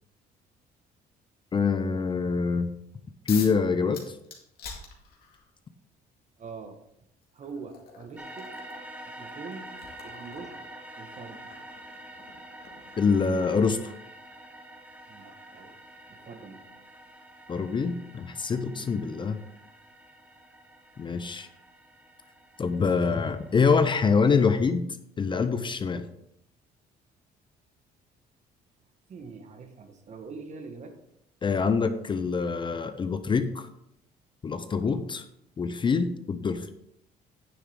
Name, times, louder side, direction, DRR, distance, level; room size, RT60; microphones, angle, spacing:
voice 1, 1.5-2.7 3.3-4.1 13.0-13.9 17.5-19.4 21.0-21.5 22.6-24.8 25.2-26.1 31.4-33.7 34.4-35.2 35.6-36.7, left 5 dB, 30° left, 11 dB, 0.6 m, -25 dB
sound 1, 3.3-3.6 3.9-5.5 6.6-6.7 7.2-13.9, left 6 dB, 65° left, 2.2 m, -46 dB
voice 2, 6.4-6.8 7.3-8.5 9.0-9.7 10.0-10.6 10.9-11.5 15.1-15.7 16.1-16.7 18.7-19.1 29.1-31.0 34.8-35.0, right 4 dB, 45° right, 6 dB, 1.5 m, -44 dB
sound 2, 8.2-24.1, right 1 dB, 10° right, 1.4 m, -47 dB
9.5 x 7.2 x 3.7 m, 0.77 s
cardioid pair, 110°, 17 cm